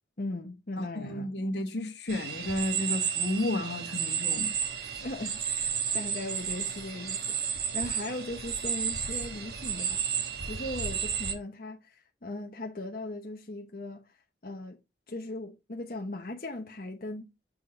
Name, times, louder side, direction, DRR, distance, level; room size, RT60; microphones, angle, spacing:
voice 1, 0.2-1.3 5.0-7.4 7.7-10.0 10.5-14.1 14.4-14.8 15.1-17.3, left 2 dB, 55° left, 1.0 m, -38 dB
voice 2, 0.8-4.5, left 1 dB, 80° left, 1.3 m, -32 dB
sound 1, 2.1-11.3, right 7 dB, 60° right, 1.2 m, -32 dB
7.2 x 3.7 x 4.9 m
head